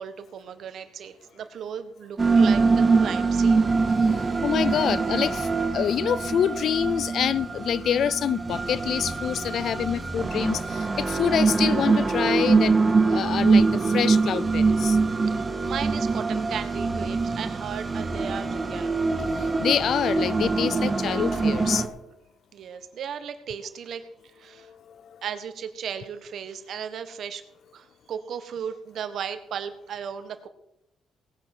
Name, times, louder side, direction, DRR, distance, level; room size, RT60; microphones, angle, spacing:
voice 1, 0.0-3.7 15.3-19.0 22.5-24.0 24.4-24.7 25.2-27.4 27.7-30.5, right 8 dB, 65° right, 1.5 m, -36 dB
sound 1, 2.2-21.9, right 4 dB, 25° right, 1.9 m, -23 dB
voice 2, 4.4-15.0 19.2-19.3 19.6-21.9 24.7-25.2, left 9 dB, 65° left, 0.5 m, -26 dB
18.5 x 8.0 x 6.2 m
cardioid pair, 90°, 0 cm